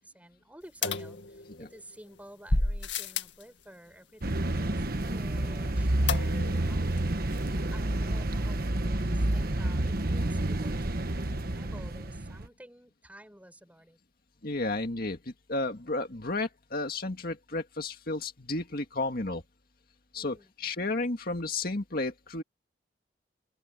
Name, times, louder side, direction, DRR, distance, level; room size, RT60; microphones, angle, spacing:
voice 1, 0.0-7.1 7.4-14.0 20.2-20.5, right 1 dB, 10° right, 6.1 m, -52 dB
sound 1, 0.8-1.8 2.5-3.4 6.1-6.7 7.0-7.1 7.3-7.4, left 3 dB, 80° left, 2.1 m, -30 dB
sound 2, 4.2-12.5, right 1 dB, 55° right, 1.3 m, -29 dB
voice 2, 14.4-15.2 15.5-19.4 20.1-22.4, left 2 dB, 55° left, 1.9 m, -32 dB
open air
head